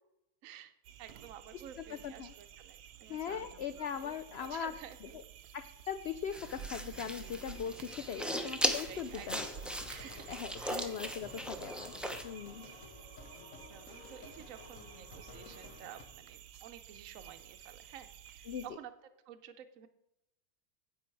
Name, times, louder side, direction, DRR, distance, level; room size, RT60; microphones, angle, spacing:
voice 1, 0.4-3.5 3.9-5.3 8.6-9.5 9.9-11.0 12.6-12.8 13.3-18.9 19.3-19.9, right 10 dB, 65° right, 9 dB, 1.1 m, -52 dB
sound 1, 0.8-18.7, right 9 dB, 80° right, 1.2 m, -52 dB
voice 2, 3.1-4.7 5.5-9.5 10.3-11.9 12.2-12.7 18.5-18.6, left 8 dB, 85° left, 11 dB, 0.5 m, -40 dB
sound 2, 6.3-12.2, equal, ahead, 0.3 m, -38 dB
sound 3, 9.1-16.0, left 4 dB, 55° left, 1.7 m, -53 dB
10.0 x 8.2 x 4.5 m, 0.86 s
omnidirectional pair, 1.7 m